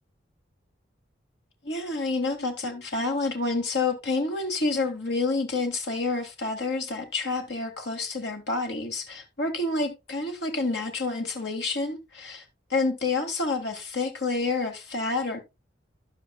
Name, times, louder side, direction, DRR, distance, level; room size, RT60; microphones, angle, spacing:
voice 1, 1.6-12.4 12.7-15.4, left 3 dB, 65° left, 1.8 m, -28 dB
11.5 x 8.2 x 2.2 m
head